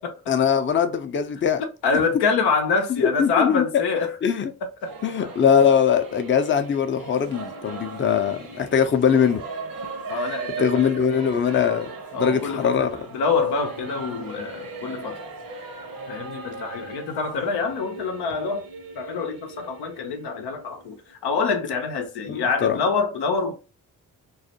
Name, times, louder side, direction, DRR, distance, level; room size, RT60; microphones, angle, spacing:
voice 1, 0.3-1.6 3.2-3.6 4.2-4.5 5.0-9.4 10.6-12.9 22.3-22.8, left 7 dB, 30° left, 0.5 m, -21 dB
voice 2, 1.6-4.2 10.1-11.1 12.1-12.9 13.1-15.2 16.1-18.6 18.9-23.5, left 4 dB, 80° left, 0.6 m, -26 dB
Singing / Musical instrument, 4.8-21.1, right 4 dB, 60° right, 0.8 m, -38 dB
2.4 x 2.1 x 2.7 m
supercardioid pair, 40°, 39 cm